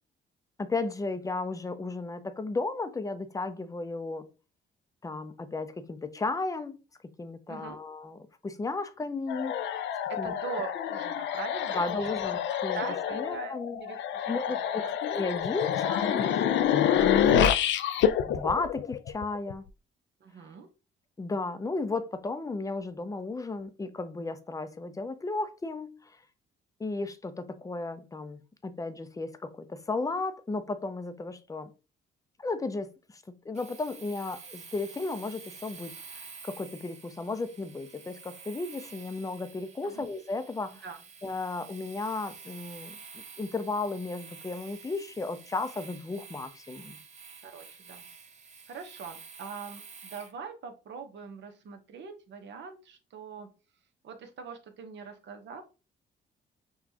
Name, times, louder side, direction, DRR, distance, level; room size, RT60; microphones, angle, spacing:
voice 1, 0.6-4.3 5.0-6.8 7.2-9.8 10.2-10.3 11.7-12.8 13.1-13.8 14.3-14.8 15.1-17.0 18.3-19.7 21.2-26.1 26.8-31.7 32.4-40.8 41.2-43.0 43.4-47.0, left 3 dB, 15° left, 0.5 m, -34 dB
sound 1, 9.3-19.5, left 9 dB, 70° left, 0.4 m, -27 dB
voice 2, 10.1-12.1 12.7-14.9 20.2-20.7 39.8-40.1 40.8-41.0 47.4-48.0 48.7-53.5 54.0-55.6, right 6 dB, 65° right, 0.9 m, -42 dB
Domestic sounds home sounds, 33.5-50.4, right 5 dB, 35° right, 0.7 m, -49 dB
5.9 x 2.3 x 2.8 m
cardioid pair, 90°, 20 cm